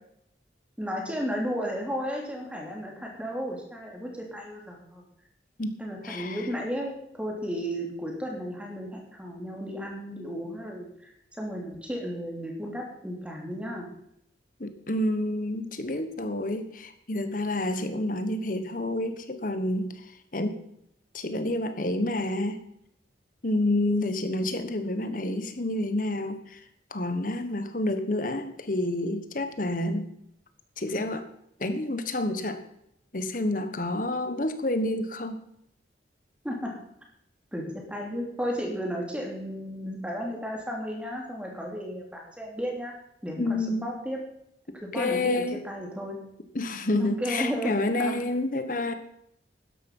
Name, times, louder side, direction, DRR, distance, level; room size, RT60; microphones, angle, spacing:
voice 1, 0.8-5.0 5.8-11.1 11.4-13.9 36.4-36.8 37.5-42.9 43.2-44.2 44.8-46.2 47.0-48.2, equal, 5° right, 0 dB, 2.9 m, -34 dB
voice 2, 5.6-6.4 14.6-19.9 20.3-20.6 21.1-22.6 23.4-26.6 26.9-30.1 30.8-31.2 31.6-32.6 33.1-35.4 43.4-43.9 44.9-45.7 46.5-48.9, left 1 dB, 45° left, 9 dB, 1.3 m, -29 dB
12.5 x 10.5 x 5.5 m, 0.76 s
head